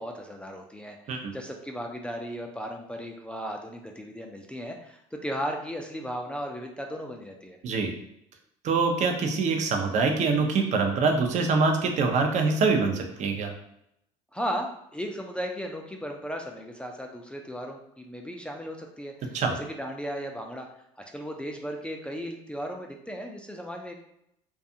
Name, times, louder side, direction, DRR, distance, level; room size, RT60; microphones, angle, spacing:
voice 1, 0.0-7.6 14.3-20.7 21.1-24.0, equal, 5° left, 1 dB, 0.3 m, -36 dB
voice 2, 8.6-13.5 19.3-19.5, right 4 dB, 50° right, 4 dB, 0.5 m, -24 dB
2.4 x 2.3 x 2.7 m, 0.77 s
supercardioid pair, 90°, 15 cm